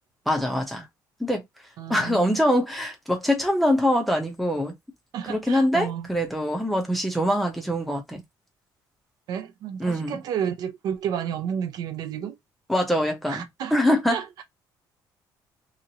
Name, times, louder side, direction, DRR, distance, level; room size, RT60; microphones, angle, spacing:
voice 1, 0.3-0.8 1.2-1.4 1.9-4.7 5.2-8.2 9.8-10.2 12.7-14.2, equal, ahead, 0.7 m, -24 dB
voice 2, 1.8-2.4 5.1-6.1 9.3-12.4 13.3-13.7 14.1-14.4, right 8 dB, 55° right, 0.5 m, -31 dB
2.9 x 2.5 x 2.7 m
cardioid pair, 175°, 8 cm